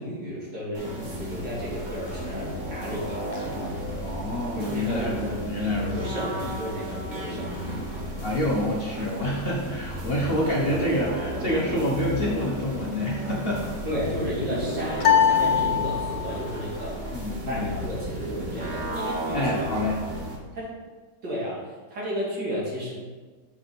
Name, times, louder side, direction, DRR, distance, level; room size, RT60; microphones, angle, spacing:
voice 1, 0.0-3.2 4.5-5.4 5.7-7.8 13.8-17.0 17.5-19.5 20.5-20.7 21.2-21.6 21.9-22.9, equal, 75° right, -6 dB, 2.9 m, -33 dB
sound 1, 0.7-20.4, equal, 30° right, 1.1 m, -34 dB
voice 2, 4.0-6.0 8.2-13.7 17.1-17.6 19.3-20.0, left 1 dB, 40° left, -4 dB, 1.1 m, -27 dB
sound 2, 15.0-16.5, left 8 dB, 80° left, 1.4 m, -21 dB
7.3 x 4.9 x 4.1 m, 1.3 s
omnidirectional pair, 1.9 m